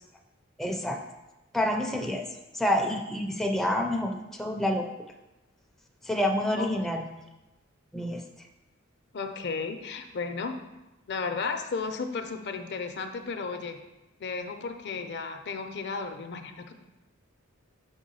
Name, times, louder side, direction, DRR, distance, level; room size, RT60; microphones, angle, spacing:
voice 1, 0.6-1.0 1.5-2.2 2.5-4.9 6.0-7.1 7.9-8.2, left 1 dB, ahead, 1 dB, 0.4 m, -28 dB
voice 2, 9.1-10.6 11.1-13.8 14.2-16.7, left 4 dB, 55° left, 7 dB, 0.6 m, -34 dB
5.7 x 3.7 x 5.4 m, 1.0 s
head